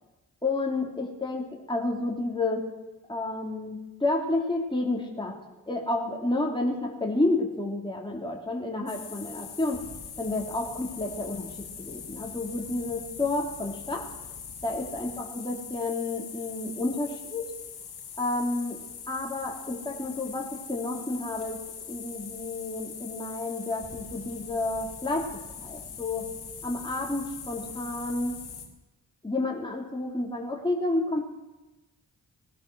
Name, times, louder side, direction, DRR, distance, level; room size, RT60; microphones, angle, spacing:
voice 1, 0.4-2.6 3.1-5.3 5.7-9.8 10.2-14.0 14.6-17.5 18.2-18.8 19.1-21.6 21.9-25.2 25.5-26.3 26.6-28.4 29.2-31.2, left 2 dB, 15° left, -1 dB, 3.2 m, -30 dB
sound 1, 8.9-28.7, left 7 dB, 85° left, 2.1 m, -42 dB
19.5 x 12.0 x 6.2 m, 1.1 s
supercardioid pair, 45°, 37 cm